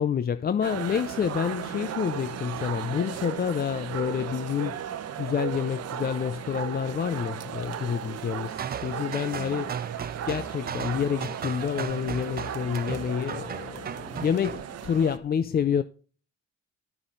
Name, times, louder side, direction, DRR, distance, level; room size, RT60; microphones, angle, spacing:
voice 1, 0.0-4.8 5.2-9.8 10.3-15.8, left 8 dB, 30° left, 0.4 m, -28 dB
sound 1, 0.6-15.2, right 9 dB, 55° right, 0.8 m, -36 dB
sound 2, 8.5-14.7, right 7 dB, 30° right, 0.5 m, -36 dB
12.0 x 5.7 x 3.8 m
cardioid pair, 90°, 30 cm